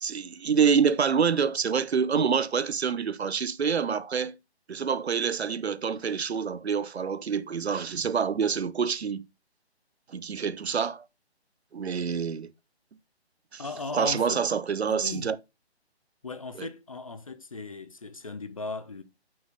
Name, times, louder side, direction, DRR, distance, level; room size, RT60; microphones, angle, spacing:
voice 1, 0.0-4.3 4.7-9.2 10.1-11.0 11.7-12.5 13.5-13.6 13.9-15.4 16.6-16.7, right 6 dB, 75° right, 0.7 m, -26 dB
voice 2, 13.6-14.5 14.9-15.3 16.2-19.0, left 3 dB, 35° left, 0.5 m, -37 dB
5.7 x 4.2 x 5.0 m
figure-of-eight pair, 155°, 33 cm